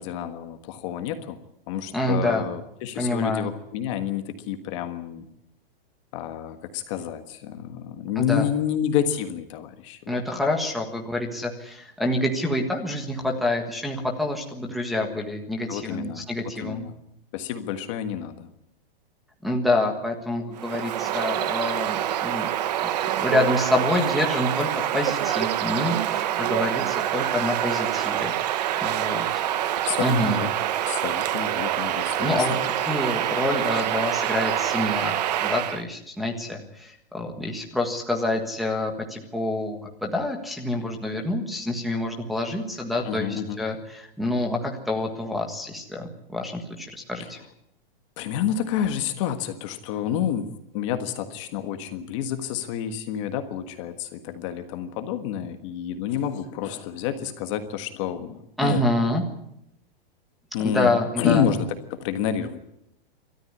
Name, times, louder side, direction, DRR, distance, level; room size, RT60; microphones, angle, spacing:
voice 1, 0.0-1.4 1.7-5.3 6.1-10.2 15.7-16.2 16.6-16.9 17.3-18.5 29.8-30.5 30.8-32.5 43.0-43.6 48.2-58.9 60.5-62.6, left 9 dB, 30° left, 8 dB, 1.5 m, -29 dB
voice 2, 1.9-2.4 3.0-3.5 8.1-8.5 10.1-16.8 19.4-22.5 23.2-29.4 30.0-30.4 32.2-35.1 35.4-47.4 58.6-59.2 60.6-61.5, left 1 dB, ahead, -1 dB, 1.5 m, -27 dB
Bird vocalization bird call bird song, 20.6-35.8, right 11 dB, 45° right, 1.0 m, -26 dB
27.5 x 13.5 x 9.9 m, 0.81 s
supercardioid pair, 175°, 30 cm